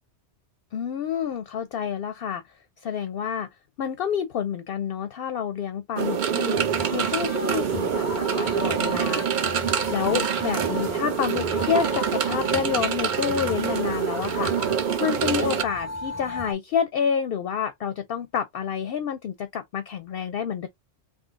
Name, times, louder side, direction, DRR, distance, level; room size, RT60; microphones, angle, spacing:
voice 1, 0.7-2.4 2.8-3.5 3.8-9.3 9.9-14.5 15.0-20.7, left 7 dB, 65° left, 0.7 m, -28 dB
sound 1, 6.0-15.6, right 8 dB, 55° right, 0.6 m, -26 dB
sound 2, 6.5-16.5, left 2 dB, 20° left, 0.4 m, -36 dB
3.6 x 2.6 x 2.5 m
omnidirectional pair, 1.2 m